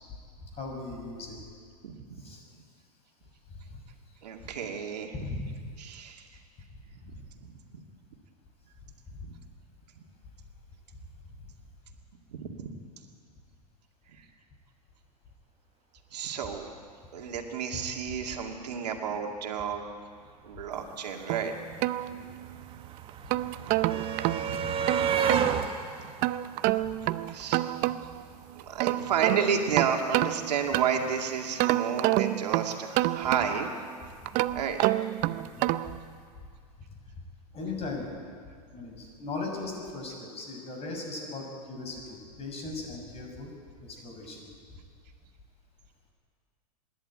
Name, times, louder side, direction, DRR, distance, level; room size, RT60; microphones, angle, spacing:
voice 1, 0.4-1.3 2.2-2.4 3.5-3.8 4.4-4.5 5.1-5.7 7.1-7.2 9.1-9.2 17.7-17.8 22.0-22.6 23.2-23.3 26.8-26.9 35.3-35.7 36.4-36.5 37.5-38.1 38.7-43.5 43.8-44.5, left 3 dB, 30° left, 1 dB, 6.4 m, -38 dB
voice 2, 4.2-5.1 5.8-6.2 12.3-12.7 16.1-16.7 17.1-19.8 20.4-21.5 24.4-24.6 25.4-25.5 27.3-27.6 28.7-33.7 34.5-34.9, right 7 dB, 80° right, 3 dB, 2.3 m, -31 dB
sound 1, 21.1-21.2 21.4-27.5 28.7-28.9 29.1-29.3, right 7 dB, 25° right, 1.4 m, -32 dB
sound 2, 21.3-22.6 23.1-25.5 26.2-28.2 28.6-31.1 31.6-33.8 34.3-36.0, right 16 dB, 40° right, 0.6 m, -28 dB
25.5 x 11.0 x 9.0 m, 2.1 s
hypercardioid pair, 115°, 21 cm